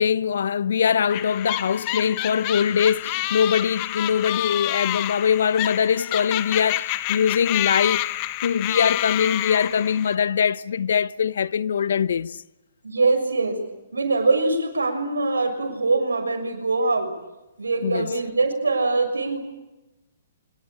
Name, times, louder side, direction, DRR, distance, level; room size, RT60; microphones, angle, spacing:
voice 1, 0.0-8.1 8.4-12.4 17.8-18.1, left 7 dB, 70° left, 0.9 m, -22 dB
sound 1, 1.1-10.2, left 17 dB, 35° left, 1.4 m, -28 dB
voice 2, 12.8-13.6 13.9-17.1 17.6-19.4, right 3 dB, 90° right, 6.3 m, -23 dB
25.5 x 23.0 x 8.9 m
hypercardioid pair, 130°, 0 cm